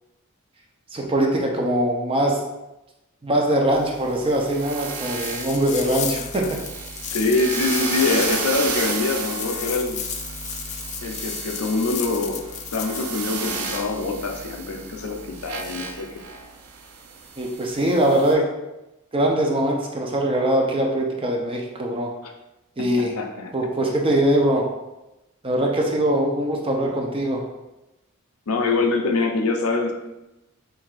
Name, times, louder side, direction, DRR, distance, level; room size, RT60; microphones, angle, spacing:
voice 1, 0.9-2.4 3.2-6.6 17.4-18.4 19.1-22.1 22.8-23.1 23.5-24.7 25.4-27.4, right 1 dB, 25° right, 0 dB, 0.6 m, -22 dB
sound 1, 3.7-18.3, right 4 dB, 80° right, 0.6 m, -33 dB
sound 2, 5.1-13.2, left 8 dB, 30° left, 0.3 m, -33 dB
voice 2, 7.1-10.0 11.0-16.1 22.8-22.9 23.2-23.7 28.5-29.9, left 3 dB, 75° left, 3 dB, 0.6 m, -24 dB
7.2 x 2.6 x 2.5 m, 0.98 s
head